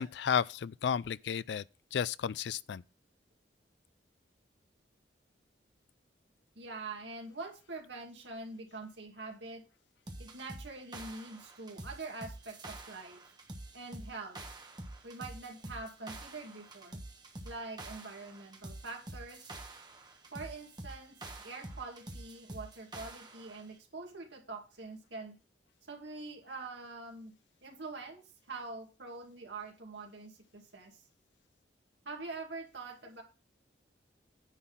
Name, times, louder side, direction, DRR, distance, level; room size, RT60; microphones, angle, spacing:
voice 1, 0.0-1.6 1.9-2.8, left 7 dB, 65° left, 0.3 m, -32 dB
voice 2, 6.6-9.6 10.2-13.2 13.7-14.4 15.0-17.0 17.4-19.6 20.3-25.4 25.9-27.3 27.6-28.2 28.5-31.0 32.0-33.2, right 3 dB, 70° right, 2.4 m, -45 dB
sound 1, 10.1-23.6, right 2 dB, 25° right, 1.1 m, -47 dB
10.0 x 3.9 x 7.1 m
head